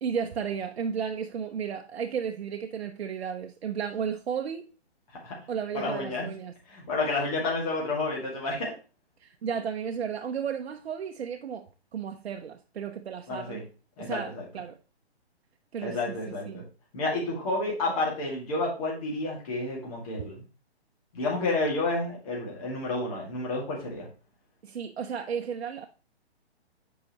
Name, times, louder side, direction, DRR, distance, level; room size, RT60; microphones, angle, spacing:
voice 1, 0.0-4.7 5.5-6.5 9.2-13.7 14.0-14.8 15.7-16.7 17.9-18.0 24.6-25.9, right 7 dB, 70° right, 0.7 m, -34 dB
voice 2, 5.7-6.3 6.7-8.7 13.3-13.6 14.0-14.4 15.8-16.6 16.9-20.5 21.1-24.1, left 2 dB, 35° left, 2.2 m, -30 dB
8.1 x 4.7 x 3.0 m
hypercardioid pair, 165°, 33 cm